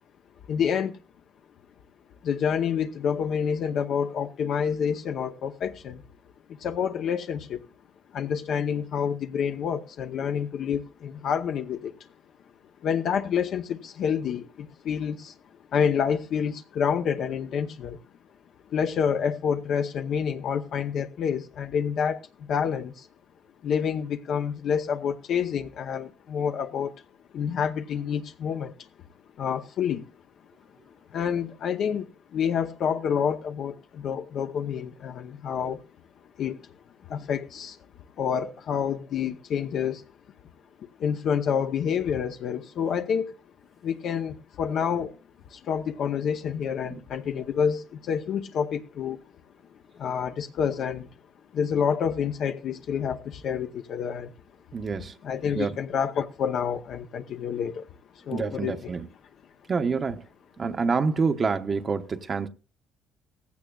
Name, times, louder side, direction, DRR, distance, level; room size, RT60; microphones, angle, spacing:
voice 1, 0.5-1.0 2.2-6.0 6.5-7.6 8.1-12.0 12.8-15.3 15.7-18.0 18.7-23.1 23.6-26.9 27.3-28.9 29.4-30.1 31.1-35.8 36.4-36.6 37.1-37.8 38.2-40.0 41.0-43.3 43.8-45.2 45.5-49.2 49.9-51.1 51.5-54.3 55.2-57.9 58.1-58.9, left 7 dB, 60° left, 0.8 m, -28 dB
voice 2, 54.7-55.1 55.6-55.7 58.3-59.1 59.7-60.2 60.6-62.5, right 5 dB, 35° right, 0.9 m, -27 dB
17.0 x 15.5 x 2.4 m
cardioid pair, 105°, 0 cm